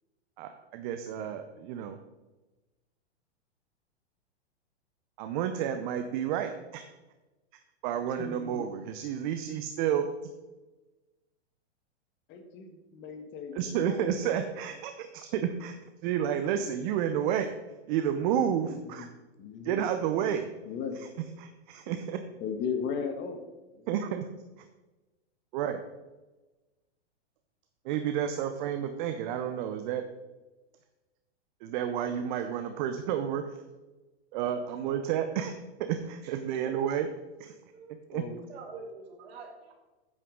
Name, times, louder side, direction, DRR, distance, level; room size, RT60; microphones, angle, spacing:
voice 1, 0.4-2.0 5.2-6.8 7.8-10.1 13.5-17.5 17.9-19.1 19.6-20.5 21.0-21.1 21.4-22.2 23.9-24.2 25.5-25.8 27.8-30.0 31.6-33.6 34.3-35.5 35.9-37.1 37.4-37.6 38.1-38.2, right 9 dB, 45° right, 7 dB, 0.8 m, -31 dB
voice 2, 8.2-8.6 12.3-14.1 18.3-19.1 19.4-19.8 20.7-21.0 22.4-23.9 38.1-38.4, left 6 dB, 35° left, 6 dB, 1.4 m, -37 dB
voice 3, 38.5-39.7, right 4 dB, 65° right, -1 dB, 3.0 m, -45 dB
9.0 x 8.7 x 3.8 m, 1.1 s
hypercardioid pair, 115°, 34 cm